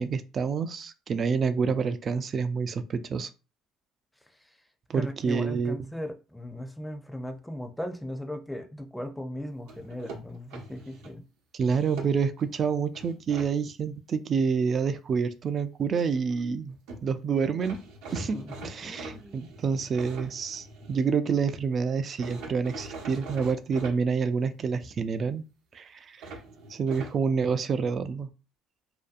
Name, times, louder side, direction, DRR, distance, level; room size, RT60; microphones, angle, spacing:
voice 1, 0.0-3.3 4.9-5.8 11.5-16.8 17.0-17.8 18.1-18.4 18.6-25.4 25.7-26.3 26.7-28.3, right 5 dB, 45° right, 0.3 m, -28 dB
voice 2, 4.9-11.2 18.1-18.6 18.8-19.5, left 1 dB, 5° left, 0.5 m, -38 dB
sound 1, 9.7-11.1 11.7-12.5 12.9-13.5 16.6-16.7 16.9-17.0 17.6-21.1 22.2-24.0 26.2-27.2, right 3 dB, 75° right, 0.7 m, -43 dB
2.6 x 2.2 x 2.4 m
supercardioid pair, 70°, 0 cm